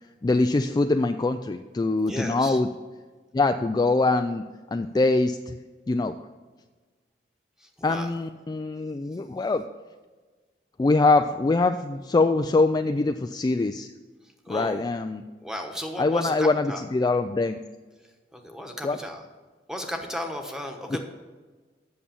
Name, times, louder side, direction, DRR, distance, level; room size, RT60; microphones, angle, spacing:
voice 1, 0.2-2.7 3.3-5.6 5.9-6.2 7.8-9.6 10.8-13.9 14.5-15.2 16.0-17.6 18.8-19.0, left 3 dB, 25° left, 7 dB, 0.3 m, -23 dB
voice 2, 2.1-2.6 7.6-8.1 14.4-14.8 15.4-16.8 18.3-19.2 19.7-21.0, equal, 5° right, 3 dB, 1.2 m, -35 dB
8.6 x 6.8 x 7.0 m, 1.3 s
head